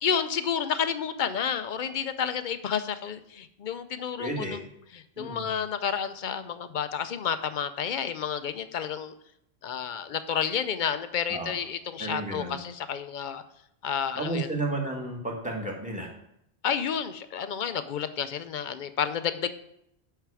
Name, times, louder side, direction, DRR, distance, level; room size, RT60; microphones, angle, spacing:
voice 1, 0.0-4.6 4.9-9.1 9.6-13.4 13.8-14.5 16.6-19.5, left 7 dB, 55° left, 11 dB, 0.7 m, -30 dB
voice 2, 4.2-4.6 5.2-5.5 11.3-11.5 12.0-12.5 14.1-16.1, right 2 dB, 5° right, 0 dB, 1.6 m, -32 dB
9.3 x 5.7 x 4.8 m, 0.77 s
omnidirectional pair, 1.1 m